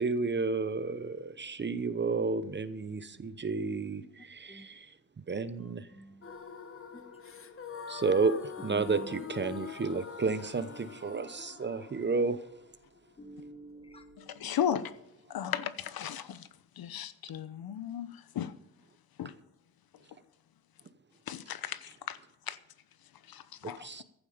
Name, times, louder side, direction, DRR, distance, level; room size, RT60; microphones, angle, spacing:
voice 1, 0.0-4.9 5.3-5.9 7.9-8.3 8.6-12.4 23.6-24.0, right 4 dB, 30° right, 0.8 m, -31 dB
voice 2, 5.6-6.2 6.9-7.1 7.7-7.8 8.7-9.1 13.2-14.5, right 1 dB, 15° left, 1.4 m, -48 dB
sound 1, 6.2-14.2, left 6 dB, 35° left, 1.1 m, -45 dB
voice 3, 14.4-14.9 15.3-16.5 16.8-18.1 18.3-18.5 19.2-19.3 21.3-22.2 22.5-22.6 23.3-23.8, left 9 dB, 70° left, 0.9 m, -35 dB
15.0 x 11.5 x 5.1 m
wide cardioid pair, 135°, 37 cm